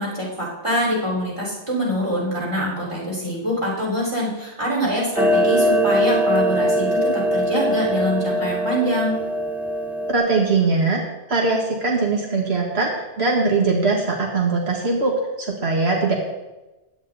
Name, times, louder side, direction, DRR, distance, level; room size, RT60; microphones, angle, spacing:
voice 1, 0.0-9.1, equal, 30° right, -4 dB, 4.5 m, -24 dB
Clock, 5.2-10.1, right 1 dB, ahead, 0.6 m, -21 dB
voice 2, 10.1-11.0 11.3-16.2, right 3 dB, 80° right, -1 dB, 1.8 m, -21 dB
16.0 x 10.0 x 4.0 m, 1.1 s
omnidirectional pair, 1.1 m